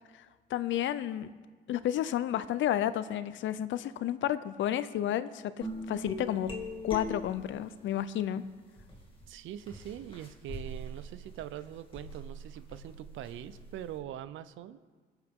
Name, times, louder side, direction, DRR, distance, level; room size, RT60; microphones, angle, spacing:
voice 1, 0.5-1.3 1.7-6.5 6.8-8.4, left 11 dB, 75° left, 15 dB, 0.6 m, -31 dB
sound 1, 5.6-8.0 8.7-13.9, equal, 25° left, 2.5 m, -42 dB
voice 2, 9.3-14.8, right 11 dB, 80° right, 14 dB, 0.6 m, -43 dB
21.0 x 8.1 x 3.7 m, 1.5 s
cardioid pair, 90°, 20 cm